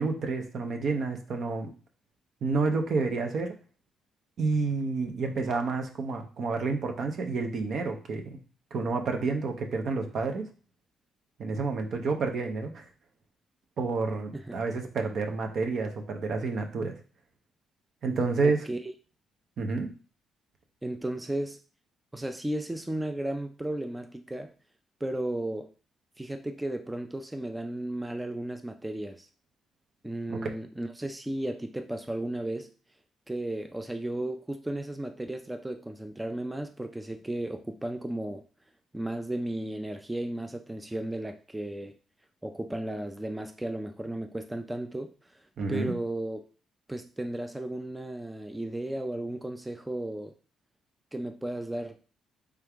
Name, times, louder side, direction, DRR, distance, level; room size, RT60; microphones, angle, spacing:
voice 1, 0.0-1.7 2.4-3.5 4.4-8.4 8.7-10.5 11.4-12.8 13.8-17.0 18.0-18.7 19.6-19.9 30.3-30.4 45.6-45.9, right 4 dB, 60° right, 4 dB, 0.8 m, -29 dB
voice 2, 18.4-18.8 20.8-21.6 22.1-24.5 25.0-25.7 26.2-29.3 30.0-32.7 33.3-38.5 38.9-42.0 42.4-45.1 45.7-46.4 46.9-50.3 51.1-52.0, right 1 dB, 10° right, 6 dB, 0.4 m, -34 dB
3.4 x 3.4 x 3.5 m, 0.37 s
cardioid pair, 90°, 0 cm